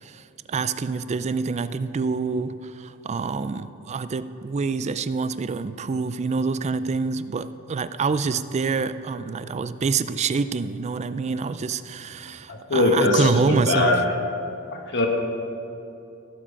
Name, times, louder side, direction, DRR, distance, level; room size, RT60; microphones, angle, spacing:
voice 1, 0.0-14.0, right 4 dB, 30° right, 14 dB, 0.3 m, -26 dB
voice 2, 12.5-14.0 14.9-15.1, left 2 dB, 55° left, 1 dB, 1.1 m, -21 dB
15.5 x 7.4 x 5.1 m, 2.8 s
head